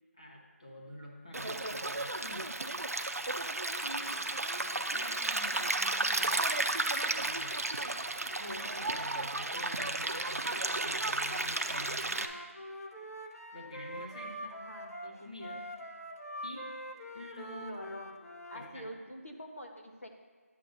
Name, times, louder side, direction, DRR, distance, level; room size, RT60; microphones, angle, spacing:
voice 1, 0.2-2.5 3.8-4.1 4.9-6.4 7.0-7.6 8.4-12.3 13.5-14.6 15.0-15.7 16.4-16.7 17.1-17.8 18.5-18.9, left 1 dB, 25° left, -1 dB, 1.0 m, -47 dB
Stream, 1.3-12.3, right 2 dB, 80° right, 0.7 m, -33 dB
voice 2, 3.9-4.9 14.5-14.9 17.6-18.1 18.5-20.1, equal, 65° left, 2 dB, 1.3 m, -47 dB
Wind instrument woodwind instrument, 12.1-18.7, equal, 85° left, 1.0 m, -44 dB
11.5 x 7.6 x 2.6 m, 1.4 s
figure-of-eight pair, 175°, 8 cm